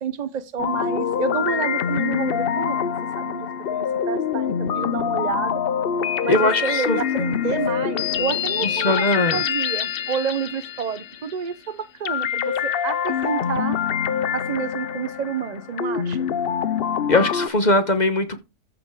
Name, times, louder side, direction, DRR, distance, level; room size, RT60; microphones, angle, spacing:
voice 1, 0.0-2.9 3.2-5.6 6.2-13.8 14.3-16.3, right 7 dB, 70° right, 0.4 m, -29 dB
sound 1, 0.6-11.5 12.1-17.5, left 8 dB, 70° left, 0.5 m, -25 dB
voice 2, 6.3-7.0 8.7-9.4 17.1-18.4, left 2 dB, 30° left, 1.0 m, -20 dB
14.0 x 5.2 x 4.7 m
omnidirectional pair, 1.7 m